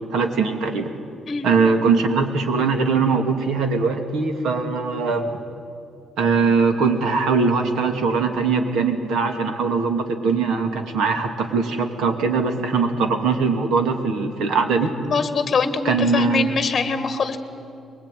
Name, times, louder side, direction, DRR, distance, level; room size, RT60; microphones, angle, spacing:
voice 1, 0.1-0.9 1.4-5.3 6.2-14.9 15.8-16.5, right 4 dB, 75° right, 5 dB, 2.7 m, -21 dB
voice 2, 15.0-17.4, left 4 dB, 30° left, 8 dB, 1.6 m, -23 dB
24.0 x 22.0 x 9.4 m, 2.5 s
cardioid pair, 165°, 0 cm